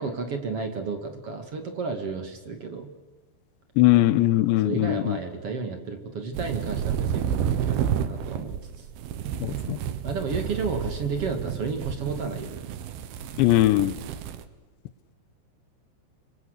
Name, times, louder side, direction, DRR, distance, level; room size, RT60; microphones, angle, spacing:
voice 1, 0.0-2.9 4.6-8.8 10.0-12.6, right 4 dB, 40° right, 6 dB, 2.4 m, -32 dB
voice 2, 3.8-5.2 9.4-9.8 13.4-14.0, left 16 dB, 80° left, 15 dB, 3.2 m, -20 dB
sound 1, 6.3-14.4, right 9 dB, 70° right, 2.9 m, -30 dB
26.0 x 24.5 x 6.7 m, 1.3 s
omnidirectional pair, 5.2 m